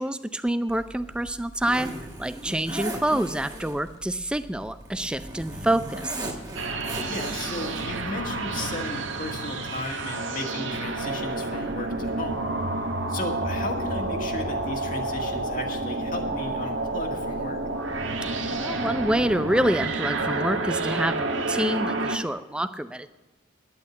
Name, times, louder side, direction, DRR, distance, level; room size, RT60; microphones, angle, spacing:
voice 1, 0.0-1.9 2.2-6.3 18.5-23.1, right 1 dB, 5° right, 12 dB, 0.4 m, -27 dB
Zipper (clothing), 0.7-8.1, right 1 dB, 20° right, 1.7 m, -38 dB
sound 1, 6.6-22.2, right 2 dB, 80° right, 1.3 m, -29 dB
voice 2, 7.1-12.4 13.1-17.6, left 2 dB, 45° left, 2 dB, 1.8 m, -35 dB
10.5 x 9.1 x 8.3 m, 1.1 s
head